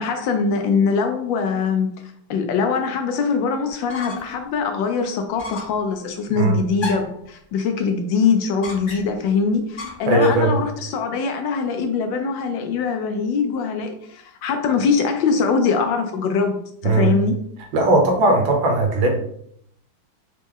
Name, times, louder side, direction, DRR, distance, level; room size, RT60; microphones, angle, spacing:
voice 1, 0.0-1.9 2.3-16.6 16.8-17.4, left 5 dB, 75° left, 5 dB, 1.2 m, -22 dB
sound 1, 3.7-4.4 4.8-4.9 5.4-5.8 6.8-7.2 8.6-9.3 9.8-10.5, left 3 dB, 60° left, 0.5 m, -34 dB
voice 2, 10.1-10.6 16.8-17.1 17.7-19.1, right 2 dB, 70° right, 3 dB, 1.6 m, -18 dB
4.1 x 3.2 x 3.6 m, 0.69 s
omnidirectional pair, 2.2 m